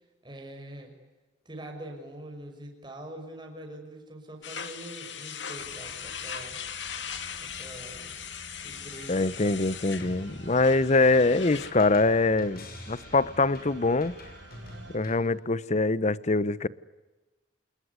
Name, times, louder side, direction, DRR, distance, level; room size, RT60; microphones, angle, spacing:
voice 1, 0.2-0.9 1.4-6.6 7.4-8.1 8.6-10.0, right 1 dB, 25° right, 2 dB, 6.0 m, -44 dB
sound 1, 4.4-11.7, left 8 dB, 70° left, 2.3 m, -39 dB
sound 2, 5.6-15.0, right 1 dB, 80° right, 4.3 m, -50 dB
voice 2, 9.1-14.1 14.9-16.7, left 3 dB, 40° left, 19 dB, 0.9 m, -24 dB
sound 3, 10.0-15.2, left 1 dB, 55° left, 6.0 m, -47 dB
28.5 x 21.0 x 9.7 m, 1.2 s
head